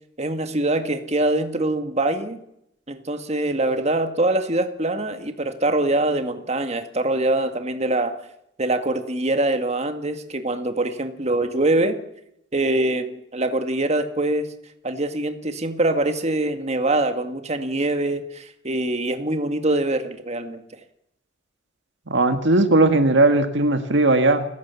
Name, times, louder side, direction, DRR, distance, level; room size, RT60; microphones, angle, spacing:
voice 1, 0.2-2.4 2.9-8.2 8.6-12.0 12.5-14.5 14.8-20.6, right 2 dB, 35° right, 7 dB, 1.9 m, -24 dB
voice 2, 22.1-24.5, right 2 dB, 65° right, 8 dB, 1.8 m, -18 dB
29.0 x 16.0 x 7.0 m, 0.78 s
head